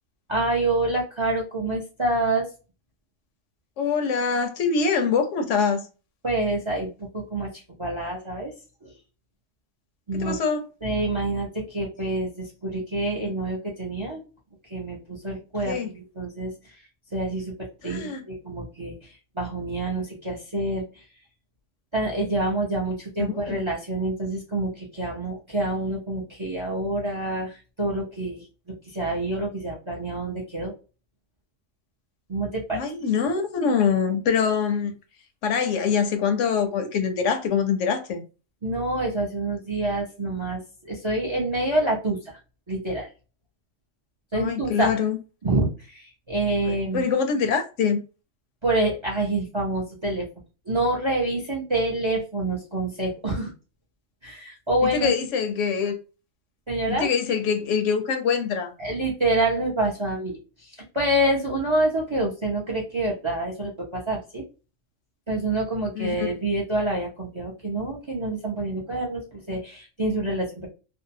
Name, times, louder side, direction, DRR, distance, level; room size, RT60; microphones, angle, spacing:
voice 1, 0.3-2.5 6.2-8.5 8.8-8.9 10.1-10.4 10.8-14.2 14.6-16.7 17.1-21.0 21.9-30.7 32.3-32.9 38.6-42.4 42.7-43.1 44.3-45.0 45.4-47.0 48.6-50.3 50.7-53.5 54.2-55.1 56.7-57.1 58.8-64.4 65.3-70.7, right 2 dB, 35° right, 0.5 m, -27 dB
voice 2, 3.8-5.9 10.1-10.6 15.7-15.9 17.8-18.2 23.5-23.6 32.7-34.9 35.4-38.2 44.3-45.2 46.6-48.0 54.9-56.0 56.9-58.7 66.0-66.2, left 6 dB, 75° left, 0.9 m, -24 dB
2.6 x 2.1 x 2.6 m
omnidirectional pair, 1.3 m